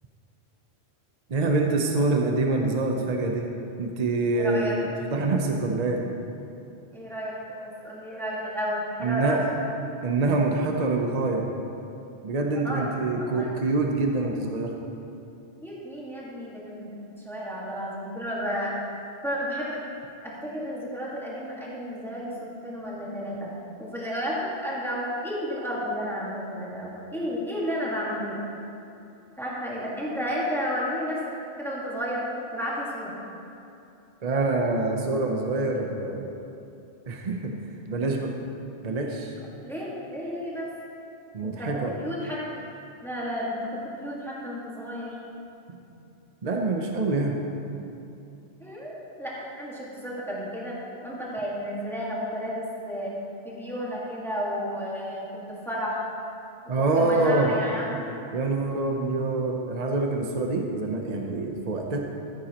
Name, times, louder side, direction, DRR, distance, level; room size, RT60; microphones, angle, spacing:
voice 1, 1.3-3.5 3.8-6.0 9.0-9.4 10.0-11.5 12.2-14.7 34.2-36.3 37.1-37.5 37.9-38.3 38.8-39.4 41.3-42.0 45.7-45.8 46.4-47.4 56.7-57.5 58.3-62.0, right 3 dB, 40° right, 1 dB, 0.8 m, -25 dB
voice 2, 4.3-4.7 6.9-9.5 12.5-12.9 13.2-13.5 15.6-17.0 17.2-18.8 19.2-19.8 20.2-23.5 23.8-28.4 29.4-31.2 31.6-32.2 32.5-33.1 39.6-40.7 41.4-41.7 42.0-42.6 43.0-45.2 48.6-50.7 51.0-53.1 53.4-55.3 55.6-55.9 57.0-58.1 58.9-59.2, equal, ahead, -6 dB, 1.7 m, -32 dB
14.5 x 9.1 x 3.0 m, 2.7 s
omnidirectional pair, 1.1 m